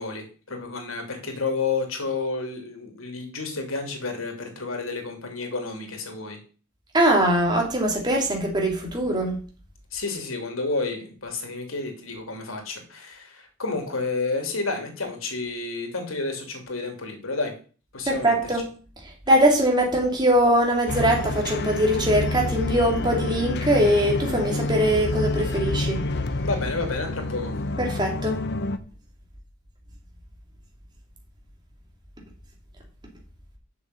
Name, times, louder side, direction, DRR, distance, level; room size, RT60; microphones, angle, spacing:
voice 1, 0.0-6.4 9.9-17.5 17.9-18.3 26.4-27.5, left 3 dB, 85° left, 3 dB, 2.9 m, -30 dB
voice 2, 6.9-9.4 18.1-18.6 19.3-26.0 27.8-28.4, right 1 dB, 20° right, 0 dB, 2.6 m, -21 dB
sound 1, 20.9-28.8, left 2 dB, 55° left, 0.9 m, -28 dB
7.1 x 6.5 x 7.7 m, 0.39 s
head